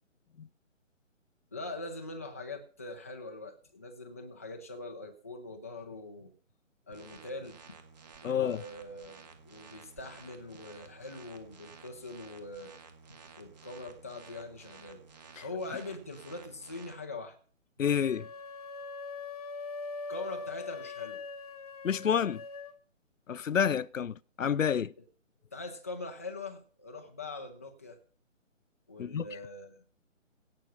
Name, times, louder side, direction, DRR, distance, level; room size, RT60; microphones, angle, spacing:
voice 1, 1.5-6.3 6.9-7.6 8.2-12.7 13.1-15.0 15.4-17.4 20.1-21.2 25.5-28.0 28.9-29.8, left 2 dB, 10° left, 0.5 m, -42 dB
sound 1, 6.9-16.9, right 5 dB, 35° right, 1.8 m, -54 dB
voice 2, 8.2-8.6 15.4-15.5 17.8-18.3 21.8-22.4 23.3-24.9 29.0-29.2, left 8 dB, 85° left, 0.6 m, -29 dB
sound 2, 17.8-22.8, left 4 dB, 30° left, 1.0 m, -42 dB
17.0 x 6.2 x 5.5 m
figure-of-eight pair, 145°, 38 cm